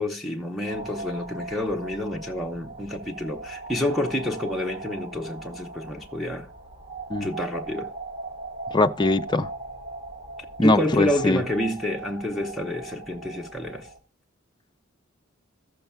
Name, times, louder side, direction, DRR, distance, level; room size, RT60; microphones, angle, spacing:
voice 1, 0.0-6.5 7.2-7.9 10.6-13.9, left 1 dB, ahead, 0.8 m, -28 dB
sound 1, 0.7-14.0, right 3 dB, 35° right, 2.3 m, -39 dB
voice 2, 8.7-9.5 10.6-11.4, left 2 dB, 20° left, 0.5 m, -21 dB
15.0 x 6.8 x 2.3 m
head